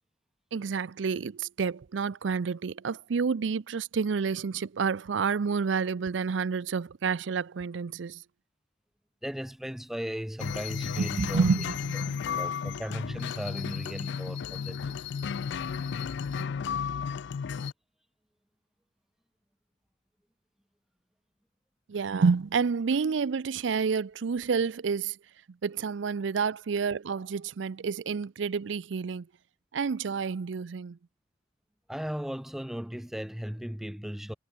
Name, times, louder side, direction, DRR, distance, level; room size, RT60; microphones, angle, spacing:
voice 1, 0.5-8.2 11.0-12.2 21.9-25.2 25.6-29.3 29.7-31.0, right 5 dB, 70° right, 0.5 m, -29 dB
voice 2, 9.2-11.6 12.4-15.0 31.9-34.3, equal, ahead, 0.3 m, -36 dB
sound 1, 10.4-17.7, left 6 dB, 65° left, 0.4 m, -33 dB
head